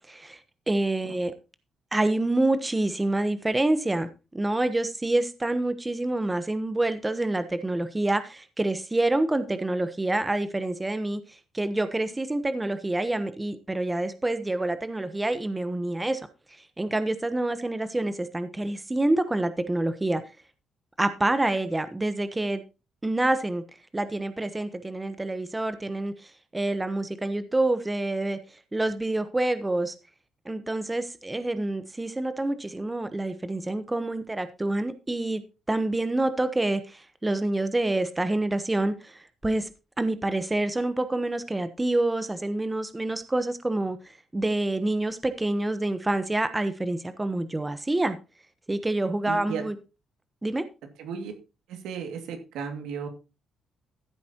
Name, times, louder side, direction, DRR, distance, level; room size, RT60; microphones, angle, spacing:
voice 1, 0.1-1.3 1.9-16.2 16.5-20.2 21.0-22.6 23.0-23.6 23.9-28.4 28.7-29.9 30.4-35.4 35.7-39.7 40.0-48.2 48.7-49.7 50.4-50.7, right 2 dB, 15° right, 1.0 m, -27 dB
voice 2, 49.3-49.6 51.0-51.3 51.7-53.1, right 6 dB, 85° right, 2.3 m, -34 dB
14.5 x 8.4 x 3.0 m
cardioid pair, 90°, 0 cm